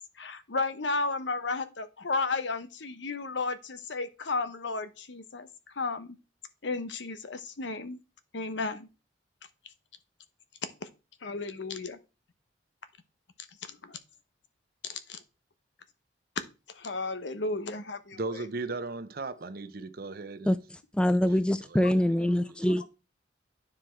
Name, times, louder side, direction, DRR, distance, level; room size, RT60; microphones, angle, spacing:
voice 1, 0.2-5.5 5.8-6.2 6.6-8.0 8.3-8.9 10.8-10.9 11.2-12.0 13.7-14.0 14.8-15.2 16.7-18.4, left 3 dB, 75° left, 0.9 m, -33 dB
voice 2, 18.1-20.5 21.7-22.1, right 3 dB, 55° right, 0.7 m, -36 dB
voice 3, 20.9-22.8, left 1 dB, 5° left, 0.3 m, -24 dB
9.6 x 4.9 x 4.5 m
head